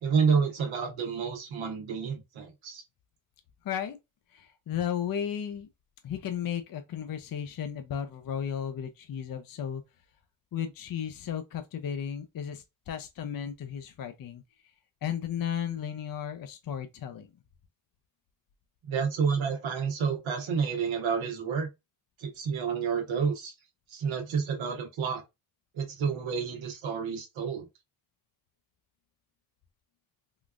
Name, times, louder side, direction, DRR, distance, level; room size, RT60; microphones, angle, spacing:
voice 1, 0.0-2.8 18.9-21.7 22.2-23.5 23.9-25.2 25.7-27.7, right 6 dB, 85° right, 1.0 m, -29 dB
voice 2, 3.6-4.0 4.3-5.7 6.0-9.8 10.5-14.4 15.0-17.3, left 9 dB, 50° left, 0.6 m, -34 dB
3.7 x 2.3 x 2.4 m
cardioid pair, 60°, 46 cm